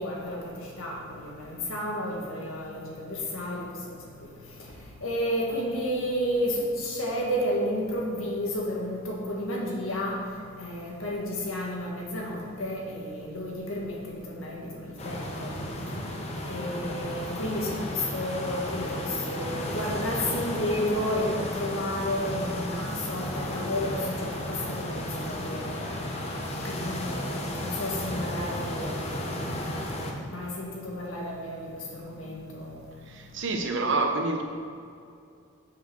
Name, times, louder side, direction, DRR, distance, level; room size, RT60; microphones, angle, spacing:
voice 1, 0.0-3.7 5.0-10.2 10.6-15.6 16.5-25.8 26.6-29.3 30.2-32.7, left 1 dB, 80° left, -2 dB, 2.0 m, -32 dB
sound 1, 15.0-30.1, left 1 dB, 30° left, 0.9 m, -33 dB
voice 2, 33.1-34.4, right 3 dB, 60° right, 4 dB, 1.0 m, -27 dB
7.2 x 5.7 x 6.2 m, 2.4 s
head